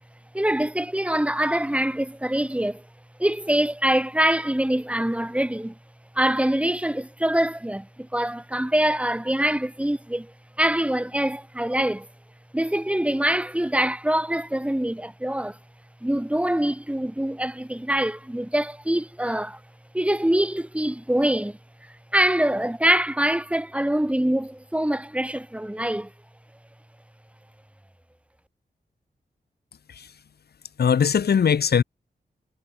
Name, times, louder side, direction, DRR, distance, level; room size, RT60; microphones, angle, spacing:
voice 1, 0.3-2.8 3.2-5.7 6.2-10.3 10.6-12.1 12.5-15.6 16.0-19.6 19.9-21.6 22.1-26.1, right 1 dB, 5° right, 3.7 m, -24 dB
voice 2, 30.8-31.8, left 7 dB, 65° left, 1.0 m, -20 dB
wide cardioid pair, 100°, 17 cm